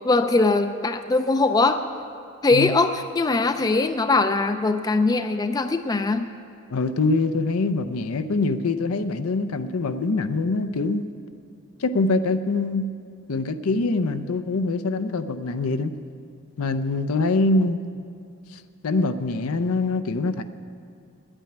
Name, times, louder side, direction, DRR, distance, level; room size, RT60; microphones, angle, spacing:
voice 1, 0.0-1.8 2.4-6.3, left 3 dB, 15° left, 9 dB, 0.3 m, -21 dB
voice 2, 6.7-11.1 11.8-12.9 13.3-15.9 16.6-17.8 18.5-20.4, left 3 dB, 80° left, 10 dB, 0.6 m, -24 dB
10.5 x 8.9 x 8.6 m, 2.4 s
head